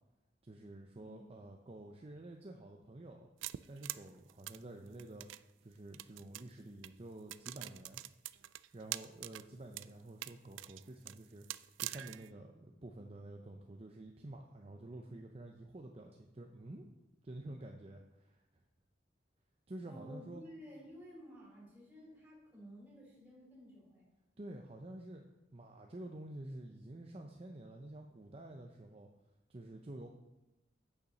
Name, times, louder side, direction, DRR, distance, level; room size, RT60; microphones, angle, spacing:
voice 1, 0.4-3.3 3.7-5.3 5.6-8.0 8.7-11.5 11.8-16.9 17.2-18.4 19.7-20.4 24.4-25.2 25.5-29.1 29.5-30.1, right 1 dB, 30° right, 2 dB, 0.6 m, -49 dB
voice 2, 1.0-1.5 19.8-24.1, equal, 10° right, -5 dB, 3.9 m, -54 dB
sound 1, 3.4-5.4 5.9-6.5 6.8-6.9 7.3-9.4 9.7-9.9 10.2-12.3, right 15 dB, 90° right, 0.3 m, -44 dB
8.6 x 6.6 x 5.5 m, 0.97 s
head